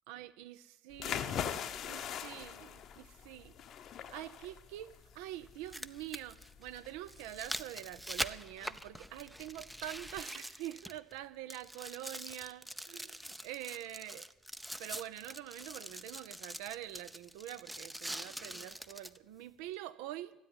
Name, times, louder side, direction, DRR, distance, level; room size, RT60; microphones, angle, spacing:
voice 1, 0.1-1.6 1.9-3.5 4.1-4.9 5.1-14.3 14.8-20.3, right 13 dB, 65° right, 12 dB, 0.8 m, -45 dB
sound 1, 0.9-10.2, left 9 dB, 50° left, 1.0 m, -43 dB
sound 2, 2.2-2.3 4.3-4.4 5.5-11.2 11.5-19.2 19.8-19.9, right 1 dB, 5° right, 0.7 m, -44 dB
13.0 x 9.2 x 9.8 m, 0.85 s
figure-of-eight pair, 60°, 0 cm